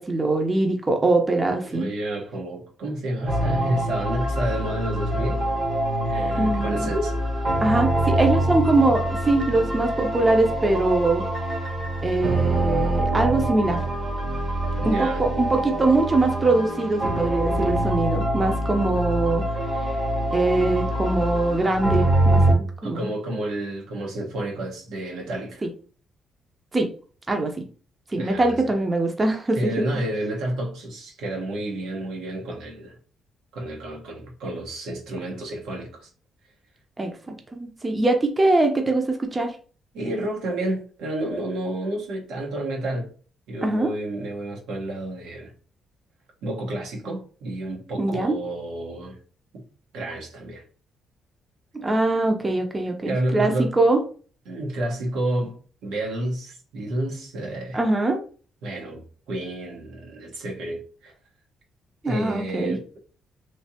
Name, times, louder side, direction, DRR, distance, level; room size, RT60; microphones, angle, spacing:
voice 1, 0.0-1.9 6.4-6.9 7.6-11.2 12.0-13.8 14.8-20.0 20.3-23.1 25.6-25.7 26.7-26.9 27.3-27.6 28.1-29.6 37.0-39.6 43.6-43.9 48.0-48.4 51.7-54.0 57.7-58.2 62.0-62.8, right 2 dB, 25° right, 0.6 m, -22 dB
voice 2, 1.6-5.4 6.0-7.2 14.8-15.3 22.8-25.6 28.2-28.5 29.5-33.0 33.5-36.1 39.9-43.1 43.5-45.5 46.4-49.2 49.5-49.6 49.9-50.6 53.1-53.7 54.5-57.8 58.6-61.1 62.0-62.8, right 1 dB, 85° right, 1.2 m, -30 dB
sound 1, 3.3-22.5, right 1 dB, 55° right, 1.1 m, -25 dB
3.2 x 2.8 x 2.8 m
cardioid pair, 90°, 0 cm